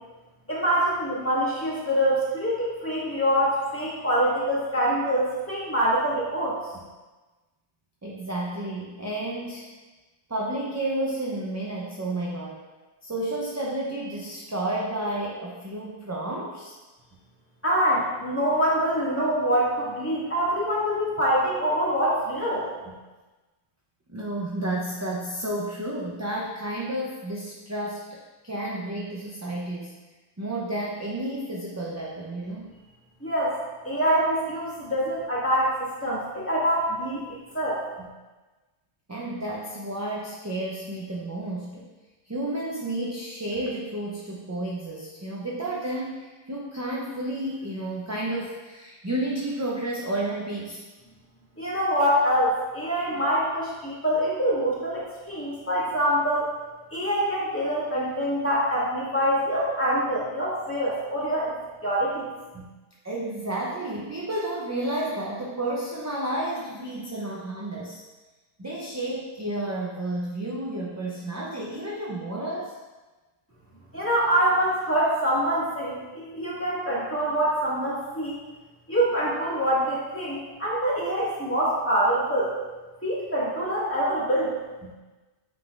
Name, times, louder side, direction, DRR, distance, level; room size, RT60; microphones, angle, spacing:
voice 1, 0.5-6.6 17.6-22.7 33.2-33.6 33.8-37.8 51.6-56.5 56.9-61.5 61.8-62.3 62.5-62.6 73.9-78.4 78.9-82.6 83.0-84.5, equal, 10° left, -8 dB, 2.0 m, -25 dB
voice 2, 8.0-9.7 10.3-12.6 13.0-16.7 24.1-29.9 30.4-32.7 39.1-41.9 42.3-50.8 63.0-68.0 68.6-72.7, right 1 dB, 20° right, -3 dB, 0.6 m, -31 dB
9.1 x 6.2 x 2.5 m, 1.2 s
omnidirectional pair, 1.1 m